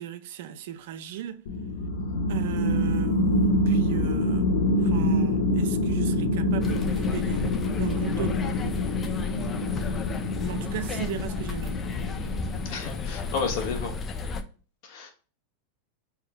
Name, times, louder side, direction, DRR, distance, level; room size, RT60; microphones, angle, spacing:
voice 1, 0.0-1.4 2.3-4.5 4.8-7.4 7.8-8.6 10.4-11.8, right 11 dB, 65° right, 0.5 m, -37 dB
sound 1, 1.5-13.5, left 1 dB, 75° left, 0.8 m, -26 dB
sound 2, 6.6-14.4, left 4 dB, 20° left, 0.5 m, -33 dB
voice 2, 12.7-13.9 14.8-15.1, left 5 dB, 50° left, 1.3 m, -31 dB
3.6 x 3.1 x 4.8 m
supercardioid pair, 145°, 0 cm